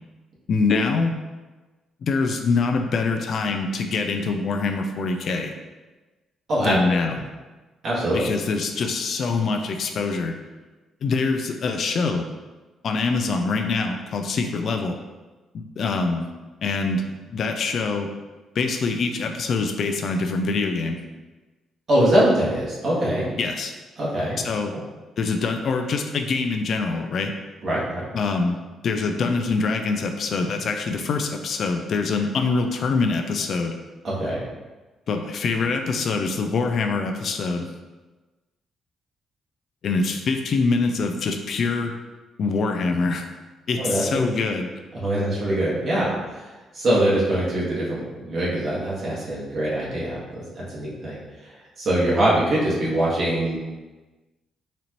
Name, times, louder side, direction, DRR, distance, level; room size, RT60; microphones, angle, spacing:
voice 1, 0.5-1.1 2.0-5.5 6.6-7.1 8.1-10.4 11.0-12.3 12.8-15.0 15.8-16.3 16.6-17.0 17.3-18.1 18.6-21.0 23.4-23.7 24.4-24.7 25.2-27.3 28.1-28.6 28.8-33.8 35.1-37.7 39.8-41.9 42.4-43.2 43.7-44.7, left 4 dB, 60° left, 5 dB, 0.4 m, -24 dB
voice 2, 6.5-7.0 7.8-8.2 21.9-23.3 24.0-24.4 27.6-28.0 34.0-34.4 43.8-44.2 44.9-53.6, right 1 dB, 55° right, -6 dB, 1.4 m, -23 dB
4.2 x 2.6 x 2.9 m, 1.2 s
cardioid pair, 90°, 0 cm